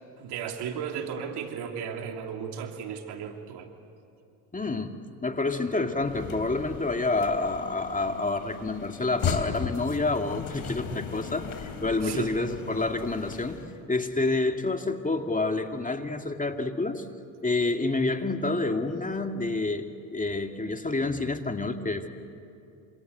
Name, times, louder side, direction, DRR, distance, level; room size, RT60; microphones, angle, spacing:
voice 1, 0.2-3.7 10.9-11.0 12.0-12.3, right 7 dB, 70° right, 4 dB, 2.9 m, -35 dB
voice 2, 4.5-5.0 5.2-13.6 13.9-17.0 17.4-19.9 20.1-22.1, left 3 dB, 20° left, 5 dB, 2.4 m, -28 dB
sound 1, 5.9-13.8, left 7 dB, 55° left, 3.3 m, -37 dB
27.5 x 26.5 x 8.2 m, 2.7 s
hypercardioid pair, 60°, 41 cm